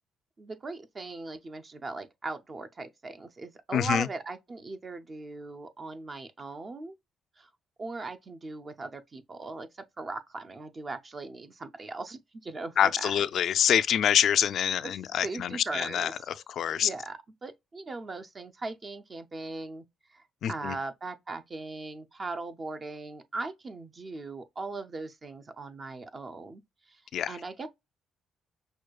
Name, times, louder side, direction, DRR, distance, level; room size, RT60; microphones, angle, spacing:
voice 1, 0.4-6.9 7.4-7.5 7.8-9.7 10.0-13.2 13.5-13.6 14.8-16.2 16.8-19.8 20.1-26.6 26.9-27.0 27.3-27.7, right 3 dB, 35° right, 0.5 m, -39 dB
voice 2, 3.7-4.1 12.8-16.1 16.5-16.9 20.4-20.8 27.1-27.4, left 9 dB, 70° left, 0.3 m, -26 dB
6.2 x 2.3 x 2.3 m
cardioid pair, 90°, 0 cm